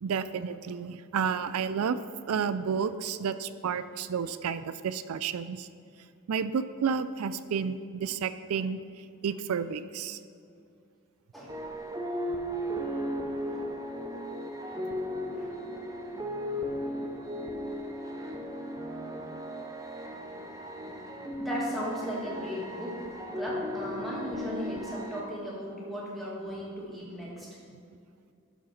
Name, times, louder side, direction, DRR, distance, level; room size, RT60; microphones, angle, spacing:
voice 1, 0.0-2.0 2.3-5.7 6.3-10.2 27.7-27.8, right 6 dB, 85° right, 13 dB, 0.4 m, -31 dB
sound 1, 11.5-25.2, equal, 15° right, 0.7 m, -36 dB
voice 2, 15.3-16.0 21.4-23.0 23.3-27.5, equal, ahead, -6 dB, 2.1 m, -37 dB
12.0 x 4.8 x 5.8 m, 2.4 s
head